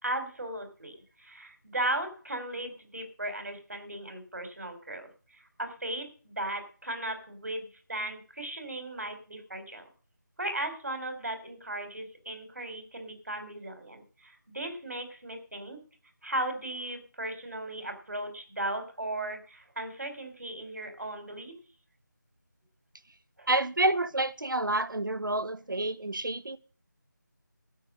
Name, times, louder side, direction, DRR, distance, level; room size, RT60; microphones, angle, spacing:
voice 1, 0.0-9.9 10.4-15.8 16.2-21.5 23.4-23.5, right 1 dB, 55° right, 4.3 m, -36 dB
voice 2, 23.5-26.6, right 2 dB, 80° right, 1.2 m, -28 dB
13.0 x 9.5 x 6.4 m
figure-of-eight pair, 180°, 11 cm